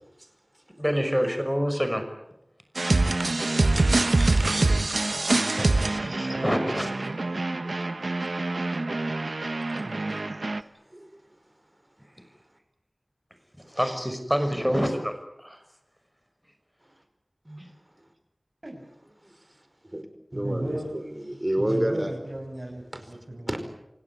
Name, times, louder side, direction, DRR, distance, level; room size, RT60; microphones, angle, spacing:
voice 1, 0.8-2.0 5.6-6.9 9.9-10.5 13.7-15.1 15.4-15.6 17.6-17.7, equal, ahead, 7 dB, 5.9 m, -27 dB
sound 1, 2.8-10.6, right 2 dB, 90° right, 1.1 m, -25 dB
voice 2, 3.2-5.0 7.6-8.2 8.9-9.1 10.9-11.2 17.5-17.6 19.2-19.4 19.8-20.1 20.3-22.1 22.9-23.0 23.5-23.6, right 1 dB, 30° right, 8 dB, 5.1 m, -32 dB
voice 3, 20.3-20.9 21.6-23.6, right 1 dB, 45° right, -1 dB, 6.9 m, -34 dB
29.0 x 17.5 x 9.7 m, 0.86 s
wide cardioid pair, 45°, 0 cm